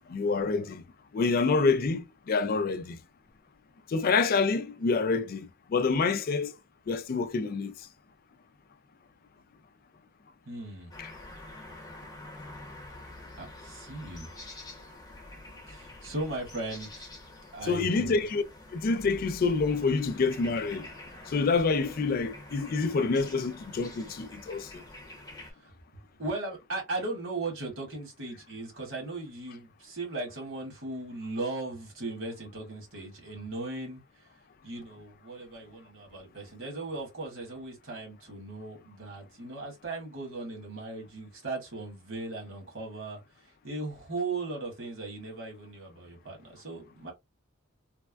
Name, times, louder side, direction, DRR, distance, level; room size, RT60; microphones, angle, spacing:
voice 1, 0.1-0.8 1.1-3.0 3.9-6.6 6.9-7.7 11.0-11.1 17.6-18.4 18.7-20.9 21.3-24.8, left 4 dB, 45° left, 0.3 m, -27 dB
voice 2, 10.4-10.9 13.4-14.3 15.7-17.1 17.5-18.3 25.4-25.7 26.2-34.0 34.6-43.2 43.6-47.1, right 2 dB, 65° right, 1.7 m, -37 dB
sound 1, 10.9-25.5, left 2 dB, 20° left, 0.9 m, -47 dB
3.4 x 2.2 x 2.2 m
head